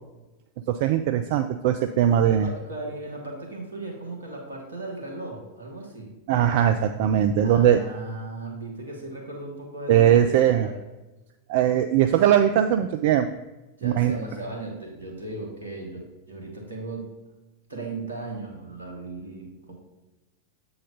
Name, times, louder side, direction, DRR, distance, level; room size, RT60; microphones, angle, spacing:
voice 1, 0.7-2.5 6.3-7.8 9.9-10.7 11.5-13.3 13.8-14.2, right 10 dB, 50° right, 8 dB, 0.3 m, -20 dB
voice 2, 2.2-6.1 7.4-10.8 13.8-17.1 17.7-19.7, right 2 dB, 75° right, 0 dB, 1.7 m, -37 dB
7.5 x 4.0 x 5.1 m, 1.1 s
figure-of-eight pair, 90°, 0 cm